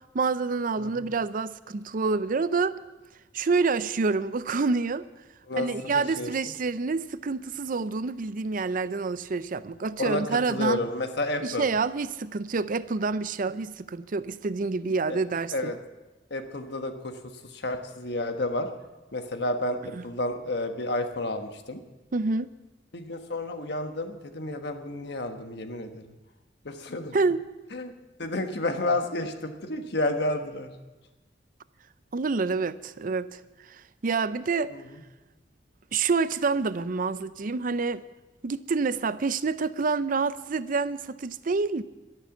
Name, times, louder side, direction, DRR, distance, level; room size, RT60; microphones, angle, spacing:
voice 1, 0.1-2.8 3.3-5.0 5.5-10.8 11.4-15.7 19.9-20.0 22.1-22.5 27.1-27.4 32.1-33.4 34.0-34.7 35.9-38.0 38.4-41.8, right 4 dB, 50° right, 0.5 m, -27 dB
voice 2, 0.8-1.1 5.5-6.3 10.0-10.2 10.5-11.6 15.1-15.2 15.5-15.8 16.3-17.1 17.5-18.7 19.1-21.8 22.9-26.0 26.6-27.2 27.7-27.9 28.2-30.7 34.7-34.8, left 2 dB, 65° left, 1.3 m, -30 dB
12.0 x 11.0 x 7.2 m
head